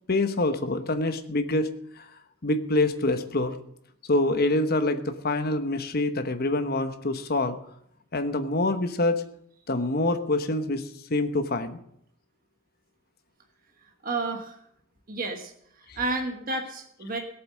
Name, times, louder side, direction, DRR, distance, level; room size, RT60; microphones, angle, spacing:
voice 1, 0.1-1.7 2.0-2.1 2.4-3.6 4.1-7.6 8.1-9.2 9.7-11.8, left 2 dB, 45° left, 9 dB, 1.1 m, -26 dB
voice 2, 14.0-14.6 15.1-17.2, right 3 dB, 40° right, 3 dB, 1.3 m, -31 dB
17.5 x 7.8 x 6.4 m, 0.72 s
head